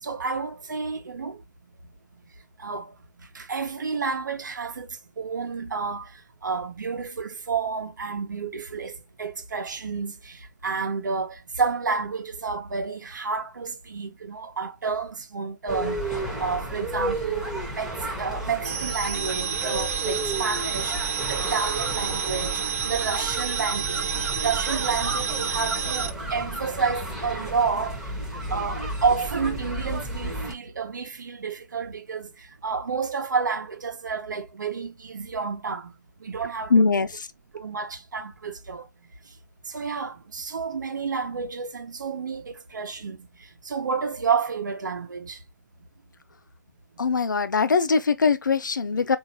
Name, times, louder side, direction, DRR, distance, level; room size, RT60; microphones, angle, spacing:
voice 1, 0.0-1.4 2.6-2.9 3.3-4.9 5.2-6.1 6.4-8.9 9.2-17.4 17.8-21.0 21.3-24.1 24.4-28.0 28.5-35.9 36.2-37.0 37.5-38.9 39.7-43.2 43.6-45.4, right 5 dB, 80° right, 1.1 m, -30 dB
sound 1, 15.7-30.5, right 1 dB, 5° right, 1.1 m, -32 dB
sound 2, 18.6-26.1, right 7 dB, 45° right, 0.5 m, -29 dB
voice 2, 36.7-37.3 47.0-49.2, left 4 dB, 90° left, 0.6 m, -21 dB
3.9 x 2.8 x 2.8 m
hypercardioid pair, 150°, 10 cm